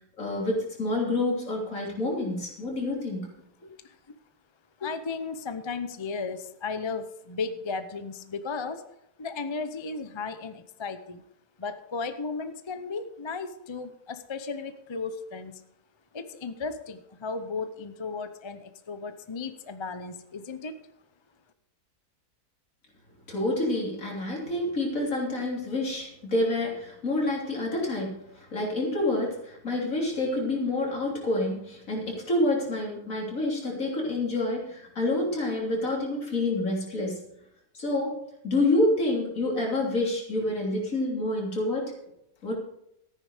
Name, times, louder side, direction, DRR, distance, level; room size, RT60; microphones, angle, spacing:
voice 1, 0.2-3.3 23.3-37.2 37.7-38.2 38.4-41.9 42.4-42.5, left 2 dB, 55° left, -2 dB, 3.6 m, -28 dB
voice 2, 4.8-8.8 9.2-11.2 11.6-15.6 16.1-20.8, left 4 dB, 35° left, 10 dB, 0.4 m, -35 dB
14.0 x 9.8 x 5.0 m, 0.79 s
omnidirectional pair, 1.7 m